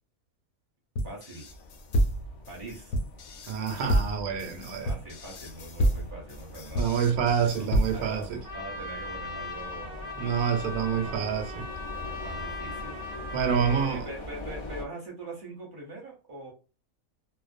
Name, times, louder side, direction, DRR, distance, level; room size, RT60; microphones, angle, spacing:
sound 1, 1.0-8.3, equal, 75° left, 1.0 m, -29 dB
voice 1, 1.0-1.5 2.5-3.0 4.8-7.7 7.9-10.0 10.7-11.4 12.0-16.5, right 2 dB, 45° right, 0.8 m, -43 dB
sound 2, 1.4-14.8, left 2 dB, 40° left, 0.5 m, -43 dB
voice 2, 3.5-4.9 6.7-8.4 10.2-11.7 13.3-14.0, right 7 dB, 85° right, 1.1 m, -27 dB
Trumpet, 8.4-13.9, left 2 dB, 10° left, 0.8 m, -39 dB
2.4 x 2.2 x 2.5 m
omnidirectional pair, 1.5 m